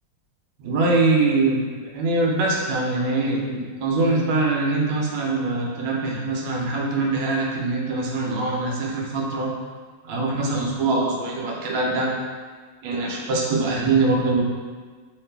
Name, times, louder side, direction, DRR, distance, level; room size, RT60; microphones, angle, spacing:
voice 1, 0.6-9.5 10.0-12.1 12.8-14.4, right 3 dB, 80° right, -2 dB, 1.4 m, -23 dB
3.2 x 2.9 x 3.3 m, 1.5 s
omnidirectional pair, 2.2 m